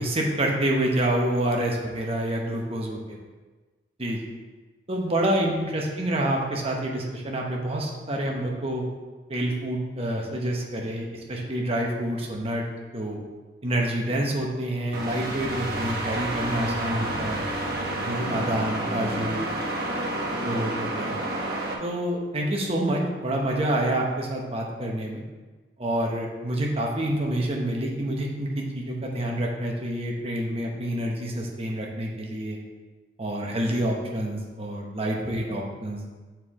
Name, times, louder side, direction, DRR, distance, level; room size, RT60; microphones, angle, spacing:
voice 1, 0.0-3.0 4.0-4.2 4.9-8.9 9.3-12.6 12.9-13.2 13.6-17.4 18.0-19.5 20.1-21.2 21.8-25.2 25.8-32.6 33.2-36.0, right 1 dB, 35° right, -1 dB, 1.0 m, -27 dB
sound 1, 14.9-21.7, right 1 dB, 60° right, 1.0 m, -29 dB
7.2 x 4.5 x 3.7 m, 1.3 s
head